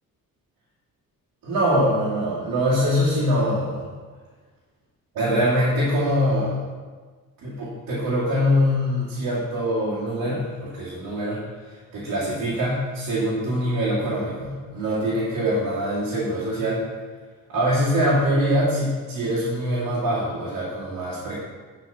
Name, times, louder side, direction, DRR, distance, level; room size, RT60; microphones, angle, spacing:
voice 1, 1.4-3.8 5.1-6.6 7.4-11.4 11.9-16.8 17.5-21.4, equal, 85° right, -9 dB, 2.5 m, -23 dB
12.0 x 4.3 x 5.6 m, 1.5 s
cardioid pair, 105°, 35 cm